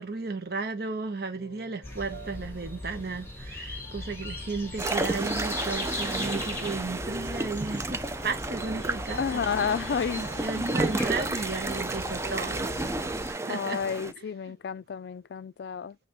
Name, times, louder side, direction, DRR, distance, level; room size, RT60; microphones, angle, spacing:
voice 1, 0.0-9.8 10.1-13.8 14.2-14.6, right 4 dB, 55° right, 0.8 m, -34 dB
sound 1, 1.3-12.9, right 3 dB, 90° right, 1.3 m, -47 dB
sound 2, 1.8-13.3, left 2 dB, 15° left, 1.4 m, -39 dB
sound 3, 4.8-14.1, right 2 dB, 15° right, 0.4 m, -32 dB
voice 2, 9.2-10.2 13.5-16.0, left 6 dB, 65° left, 0.3 m, -30 dB
5.2 x 3.3 x 2.7 m
head